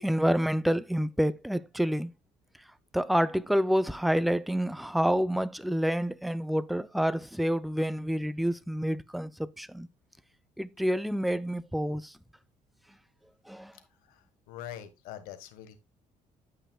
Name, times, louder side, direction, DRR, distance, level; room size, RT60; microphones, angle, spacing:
voice 1, 0.0-2.1 2.9-9.9 10.6-12.1 13.5-13.7, equal, ahead, 0.5 m, -28 dB
voice 2, 13.9-15.8, left 11 dB, 85° left, 1.6 m, -44 dB
13.0 x 5.7 x 2.3 m
cardioid pair, 95°, 15 cm